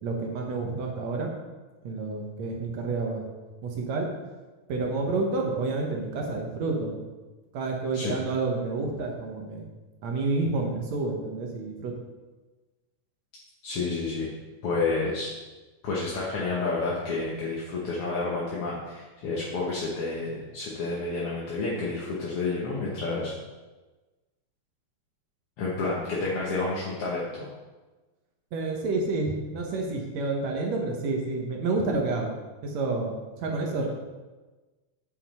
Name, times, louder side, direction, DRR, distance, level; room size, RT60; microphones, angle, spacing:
voice 1, 0.0-1.3 1.8-3.2 3.6-4.1 4.7-7.0 7.5-9.6 10.0-11.9 28.5-32.3 32.6-33.8, right 3 dB, 65° right, 1 dB, 2.1 m, -29 dB
voice 2, 13.6-14.3 14.6-15.3 15.8-23.3 25.6-27.5 33.5-33.8, left 3 dB, 55° left, -5 dB, 1.8 m, -30 dB
8.4 x 7.4 x 4.2 m, 1.2 s
omnidirectional pair, 3.6 m